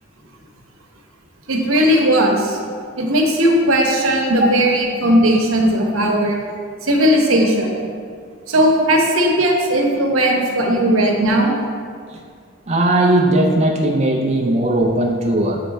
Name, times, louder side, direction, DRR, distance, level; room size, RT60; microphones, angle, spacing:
voice 1, 1.5-2.6 3.0-6.4 6.8-7.7 8.5-11.5, equal, 90° right, 1 dB, 0.9 m, -16 dB
voice 2, 12.7-15.6, right 1 dB, 30° right, 0 dB, 0.4 m, -17 dB
7.5 x 3.3 x 4.0 m, 2.1 s
head